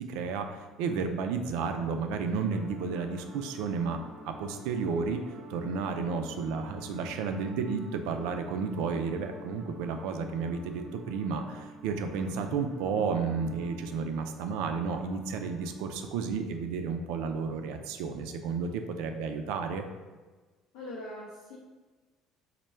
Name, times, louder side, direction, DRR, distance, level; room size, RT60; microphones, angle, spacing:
voice 1, 0.1-5.2 5.5-19.8, right 5 dB, 85° right, 6 dB, 0.3 m, -32 dB
sound 1, 2.5-16.1, right 2 dB, 40° right, 0.5 m, -48 dB
voice 2, 20.7-21.6, left 1 dB, 90° left, -6 dB, 0.6 m, -41 dB
4.3 x 2.1 x 3.2 m, 1.3 s
cardioid pair, 110°, 0 cm